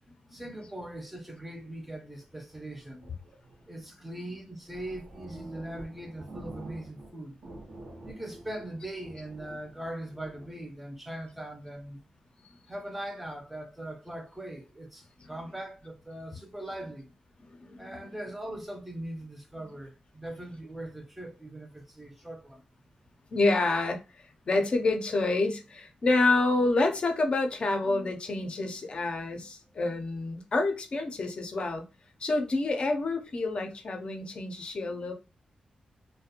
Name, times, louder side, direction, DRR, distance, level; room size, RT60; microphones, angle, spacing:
voice 1, 0.3-3.1 3.7-7.4 8.0-12.1 12.7-17.1 17.8-22.6, right 1 dB, 5° right, 0.5 m, -40 dB
sound 1, 2.1-3.9 4.4-4.5 4.7-7.1 7.4-10.4, right 2 dB, 85° right, 0.7 m, -47 dB
voice 2, 17.6-18.0 23.3-31.9 32.2-35.1, left 2 dB, 45° left, 0.5 m, -28 dB
2.4 x 2.1 x 2.8 m
wide cardioid pair, 135°, 2 cm